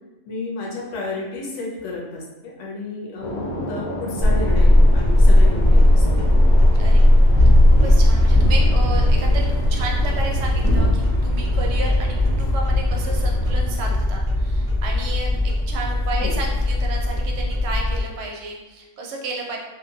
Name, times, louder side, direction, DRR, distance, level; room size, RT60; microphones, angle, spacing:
voice 1, 0.3-6.2 16.2-16.4, left 2 dB, 70° left, -2 dB, 0.9 m, -32 dB
sound 1, 3.2-12.6, equal, 50° left, 0.5 m, -34 dB
sound 2, 4.2-18.0, left 1 dB, 25° right, 0.4 m, -17 dB
voice 2, 6.7-7.2 7.7-15.3 15.7-19.6, right 3 dB, 65° right, 0 dB, 0.8 m, -32 dB
2.7 x 2.1 x 2.6 m, 1.1 s
omnidirectional pair, 1.4 m